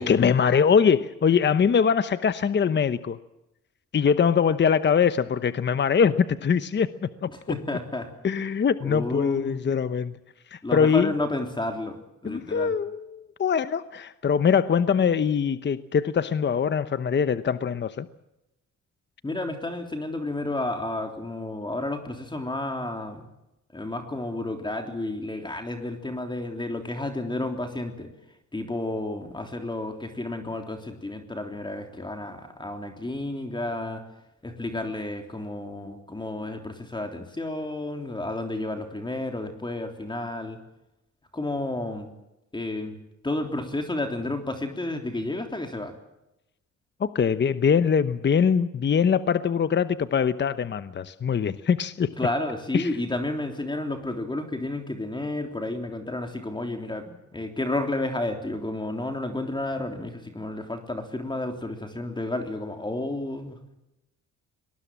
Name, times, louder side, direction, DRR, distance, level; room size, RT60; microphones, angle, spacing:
voice 1, 0.0-3.2 3.9-7.3 8.2-10.2 10.5-11.1 12.2-18.1 47.0-52.1 52.7-52.9, left 7 dB, 35° left, 13 dB, 1.0 m, -23 dB
voice 2, 7.3-8.1 8.8-9.6 10.6-12.7 19.2-23.3 23.7-28.1 28.5-34.0 34.4-40.6 41.3-42.1 42.5-43.0 43.2-45.9 52.2-63.7, left 2 dB, 15° left, 4 dB, 3.4 m, -31 dB
23.0 x 20.5 x 7.5 m, 0.90 s
cardioid pair, 90°, 30 cm